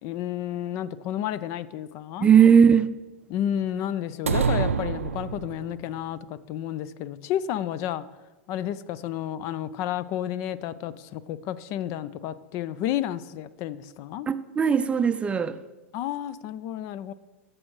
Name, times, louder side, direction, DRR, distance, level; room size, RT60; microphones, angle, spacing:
voice 1, 0.0-2.3 3.3-8.1 8.5-14.3 15.9-17.1, left 11 dB, 45° left, 0.4 m, -31 dB
voice 2, 2.2-2.9 14.3-15.6, right 7 dB, 15° right, 0.5 m, -18 dB
sound 1, 4.3-5.9, right 6 dB, 85° right, 0.4 m, -26 dB
15.0 x 6.1 x 3.1 m
hypercardioid pair, 95°, 7 cm